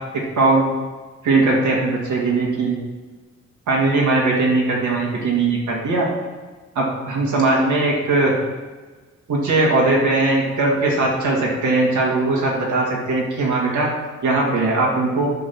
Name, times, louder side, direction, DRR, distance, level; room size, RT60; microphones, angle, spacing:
voice 1, 0.4-0.7 1.2-2.8 3.7-6.1 6.8-8.3 9.3-13.9 14.2-15.3, right 2 dB, 85° right, -3 dB, 1.9 m, -19 dB
11.0 x 3.9 x 6.8 m, 1.3 s
wide cardioid pair, 145°, 29 cm